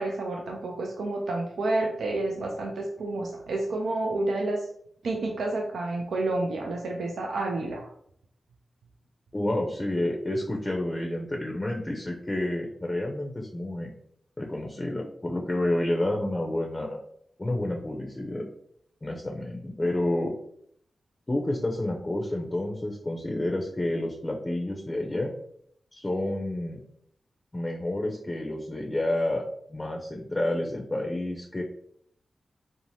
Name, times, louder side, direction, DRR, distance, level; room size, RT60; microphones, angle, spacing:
voice 1, 0.0-4.6 5.0-7.9, right 2 dB, 80° right, 0 dB, 0.3 m, -29 dB
voice 2, 9.3-13.9 14.4-17.0 17.4-18.5 19.0-20.3 21.3-25.3 25.9-26.8 27.5-29.4 29.7-31.6, left 1 dB, 30° left, 1 dB, 0.5 m, -29 dB
2.6 x 2.0 x 3.1 m, 0.68 s
cardioid pair, 40°, 0 cm